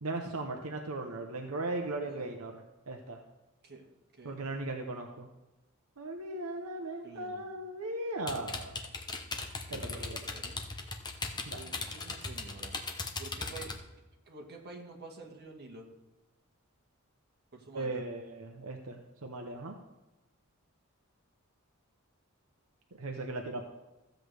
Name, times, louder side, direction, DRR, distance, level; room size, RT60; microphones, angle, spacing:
voice 1, 0.0-3.2 4.2-5.3 6.0-8.8 9.7-10.2 11.4-11.6 17.7-19.8 23.0-23.6, right 2 dB, 80° right, 3 dB, 0.9 m, -38 dB
voice 2, 4.2-4.5 7.0-7.5 9.7-10.7 11.5-12.7 13.2-13.8 14.3-15.9 17.5-18.0, right 3 dB, 50° right, 1 dB, 1.7 m, -49 dB
sound 1, 8.3-13.8, left 3 dB, 20° left, 0.9 m, -38 dB
14.5 x 7.8 x 3.4 m, 1.0 s
head